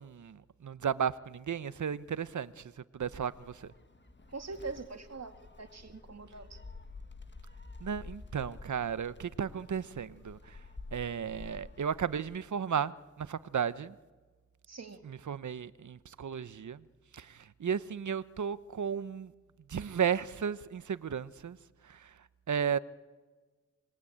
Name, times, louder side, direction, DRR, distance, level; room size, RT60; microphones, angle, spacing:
voice 1, 0.0-3.7 7.8-10.6 10.9-14.0 15.0-16.8 17.1-19.3 19.7-21.6 21.8-22.1 22.5-22.8, right 7 dB, 75° right, 0.9 m, -34 dB
Gull seagull, 3.0-12.4, left 3 dB, 40° left, 1.7 m, -50 dB
voice 2, 4.3-6.6 14.7-15.0, right 4 dB, 60° right, 2.2 m, -43 dB
26.0 x 21.0 x 8.7 m
wide cardioid pair, 65°, 30 cm